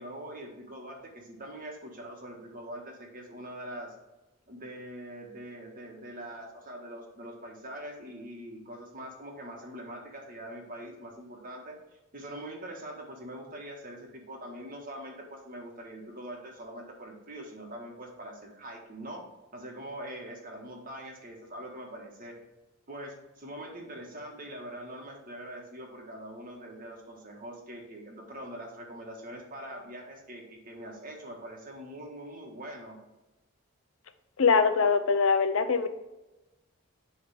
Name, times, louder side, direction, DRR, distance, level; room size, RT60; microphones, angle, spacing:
voice 1, 0.0-3.9 4.5-11.8 12.1-19.2 19.5-22.4 22.9-33.0, right 1 dB, 45° right, 0 dB, 1.6 m, -43 dB
voice 2, 34.4-35.9, left 5 dB, 70° left, 10 dB, 0.6 m, -23 dB
10.5 x 3.6 x 3.5 m, 1.0 s
head